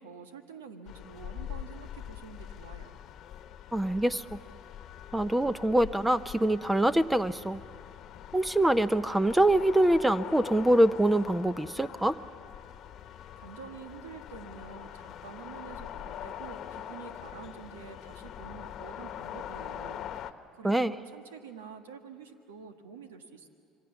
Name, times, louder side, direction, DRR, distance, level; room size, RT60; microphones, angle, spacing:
voice 1, 0.0-3.0 13.4-23.5, right 6 dB, 90° right, 7 dB, 1.6 m, -47 dB
sound 1, 0.9-20.3, left 10 dB, 55° left, 1.1 m, -43 dB
voice 2, 3.7-4.4 5.1-7.6 8.3-12.2 20.6-20.9, right 1 dB, 10° right, 14 dB, 0.7 m, -24 dB
27.0 x 23.5 x 7.2 m, 2.5 s
hypercardioid pair, 70°, 0 cm